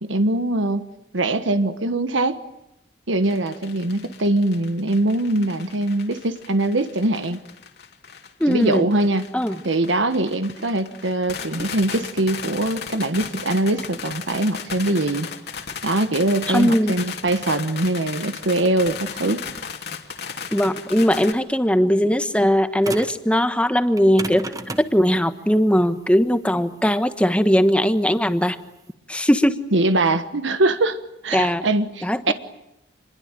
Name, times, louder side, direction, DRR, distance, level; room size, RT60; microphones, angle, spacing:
voice 1, 0.0-0.9 1.1-2.4 3.1-7.4 8.5-9.3 9.6-15.3 15.8-19.4 29.7-31.0 31.2-32.3, right 2 dB, 80° right, 10 dB, 1.4 m, -22 dB
sound 1, 3.2-21.3, left 6 dB, 55° left, 2.9 m, -36 dB
voice 2, 8.4-8.9 9.3-9.6 11.5-11.7 16.5-17.0 20.5-24.5 24.8-28.6 29.1-29.6 31.3-31.6 32.0-32.3, equal, 5° left, 9 dB, 1.3 m, -19 dB
sound 2, 22.8-23.2 23.9-28.9, right 2 dB, 20° right, 1.3 m, -35 dB
27.5 x 21.5 x 9.1 m, 0.87 s
head